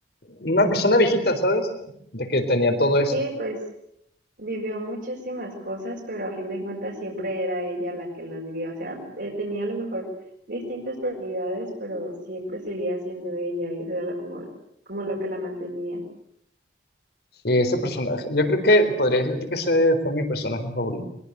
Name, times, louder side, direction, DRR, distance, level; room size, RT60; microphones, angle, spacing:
voice 1, 0.4-1.7 2.1-3.1 17.4-21.0, left 1 dB, 60° left, 8 dB, 4.1 m, -21 dB
voice 2, 3.1-3.6 4.4-10.1 10.5-14.5 14.9-16.0, equal, 65° right, -4 dB, 5.9 m, -31 dB
22.5 x 22.5 x 8.2 m, 0.74 s
head